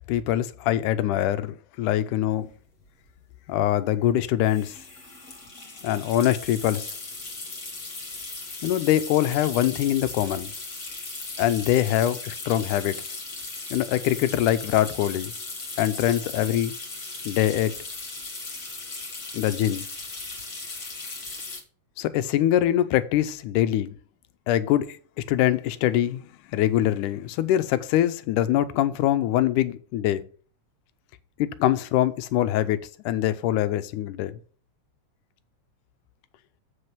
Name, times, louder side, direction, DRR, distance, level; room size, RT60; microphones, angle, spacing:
voice 1, 0.1-2.5 3.5-4.8 5.8-7.0 8.6-10.5 11.4-13.1 13.7-15.3 15.8-16.7 17.3-17.7 19.3-19.8 22.0-24.0 24.5-25.0 25.3-26.3 26.5-30.2 31.4-32.8 33.1-34.3, left 12 dB, 90° left, 2.3 m, -23 dB
sound 1, 2.5-2.6 2.8-3.1 4.4-21.6, left 3 dB, 35° left, 2.2 m, -37 dB
7.8 x 6.5 x 6.0 m
omnidirectional pair, 3.5 m